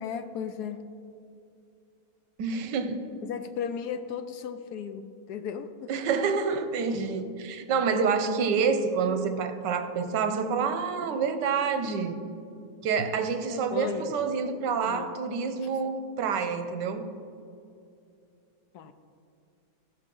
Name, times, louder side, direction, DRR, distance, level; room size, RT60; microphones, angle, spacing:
voice 1, 0.0-0.8 3.2-5.9 13.5-14.2 14.8-15.1 15.6-15.7 18.7-18.9, left 7 dB, 70° left, 9 dB, 1.1 m, -35 dB
voice 2, 2.4-3.0 5.9-12.2 12.8-17.0, right 5 dB, 80° right, 8 dB, 1.4 m, -28 dB
16.0 x 6.5 x 3.8 m, 2.5 s
omnidirectional pair, 1.9 m